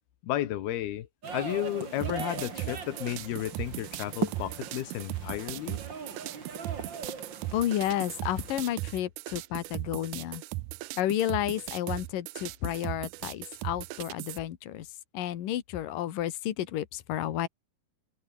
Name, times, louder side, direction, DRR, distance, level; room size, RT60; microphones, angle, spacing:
voice 1, 0.2-1.1 1.3-5.8, left 13 dB, 90° left, 3.4 m, -33 dB
sound 1, 1.2-8.8, right 5 dB, 35° right, 2.9 m, -39 dB
sound 2, 2.0-14.4, right 19 dB, 80° right, 1.9 m, -38 dB
voice 2, 7.5-10.4 11.0-14.9 15.1-17.5, left 12 dB, 65° left, 3.2 m, -31 dB
omnidirectional pair, 4.3 m